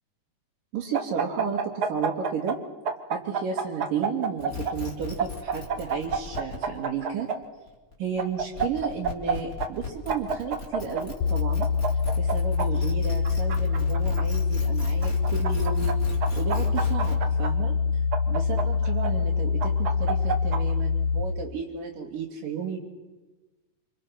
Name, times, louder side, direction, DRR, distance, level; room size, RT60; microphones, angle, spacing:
voice 1, 0.7-2.6 3.1-7.3 8.0-11.7 12.2-16.0 16.4-17.8 18.3-22.8, right 6 dB, 90° right, -5 dB, 4.3 m, -33 dB
sound 1, 0.9-2.6 2.9-4.7 5.2-7.4 8.2-9.3 9.6-9.7 10.1-11.0 11.6-12.7 13.2-14.2 15.0-15.9 16.2-17.5 18.1-19.1 19.6-20.6, right 5 dB, 60° right, 1.0 m, -28 dB
sound 2, 4.4-17.2, left 6 dB, 25° left, 3.8 m, -37 dB
sound 3, 11.2-21.2, left 5 dB, 85° left, 1.1 m, -25 dB
28.0 x 26.5 x 5.9 m, 1.1 s
omnidirectional pair, 3.7 m